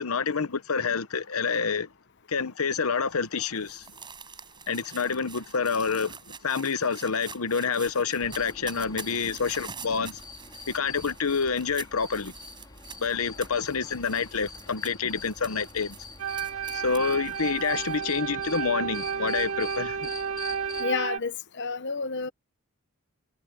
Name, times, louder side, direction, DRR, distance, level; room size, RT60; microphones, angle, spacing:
voice 1, 0.0-1.9 2.3-3.9 4.7-10.2 10.7-12.3 13.0-16.0 16.7-20.1, left 5 dB, 80° left, 1.0 m, -28 dB
sound 1, 2.9-18.0, right 6 dB, 20° right, 5.5 m, -46 dB
sound 2, 8.2-20.8, left 3 dB, 20° left, 3.9 m, -45 dB
sound 3, 16.2-21.2, right 7 dB, 80° right, 1.4 m, -32 dB
voice 2, 20.8-22.3, left 4 dB, 55° left, 0.9 m, -30 dB
head